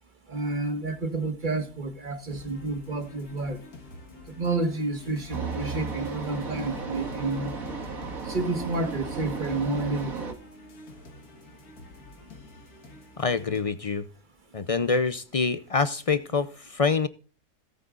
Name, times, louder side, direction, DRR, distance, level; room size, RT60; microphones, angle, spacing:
voice 1, 0.3-3.6 4.4-7.6 8.3-10.4, right 2 dB, 30° right, 1.8 m, -30 dB
sound 1, 2.3-13.7, left 2 dB, 70° left, 2.2 m, -48 dB
sound 2, 5.3-10.3, right 4 dB, 65° right, 2.4 m, -34 dB
voice 2, 13.2-14.1 14.5-17.1, left 4 dB, 55° left, 0.4 m, -26 dB
18.0 x 9.1 x 2.5 m
omnidirectional pair, 1.6 m